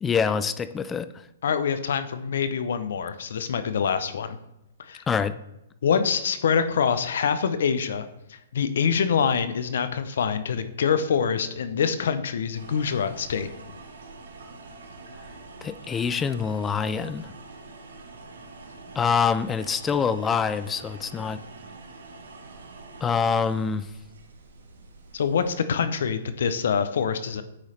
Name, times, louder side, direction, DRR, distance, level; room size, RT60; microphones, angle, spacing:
voice 1, 0.0-1.1 5.1-5.4 15.6-17.3 19.0-21.4 23.0-23.9, left 6 dB, 15° left, 13 dB, 0.3 m, -25 dB
voice 2, 1.4-4.4 4.8-5.0 5.8-13.5 25.1-27.4, left 6 dB, 70° left, 11 dB, 0.6 m, -25 dB
sound 1, 12.5-25.5, right 3 dB, 80° right, 1.2 m, -45 dB
9.0 x 3.1 x 4.3 m, 0.89 s
hypercardioid pair, 140°, 0 cm